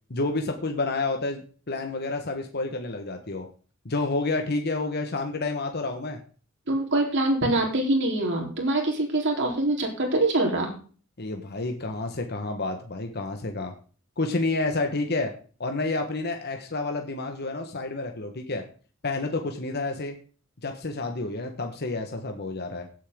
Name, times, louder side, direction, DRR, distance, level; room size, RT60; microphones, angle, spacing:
voice 1, 0.1-3.5 3.8-6.2 11.2-13.7 14.2-15.3 15.6-18.6 19.0-20.1 20.6-22.9, left 3 dB, 50° left, 4 dB, 1.4 m, -29 dB
voice 2, 6.7-10.7, right 2 dB, 60° right, 1 dB, 3.9 m, -24 dB
16.5 x 8.4 x 3.8 m, 0.40 s
head